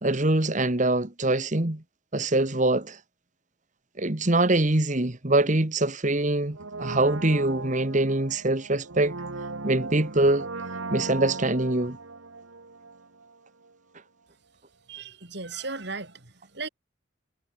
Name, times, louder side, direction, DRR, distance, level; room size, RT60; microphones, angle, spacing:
voice 1, 0.0-1.8 2.1-3.0 4.0-9.1 9.6-10.5 10.9-12.0, right 2 dB, 40° right, 1.7 m, -24 dB
Brass instrument, 6.5-13.4 13.6-13.7, right 3 dB, 85° right, 1.7 m, -37 dB
voice 2, 14.9-16.7, right 4 dB, 55° right, 4.0 m, -36 dB
head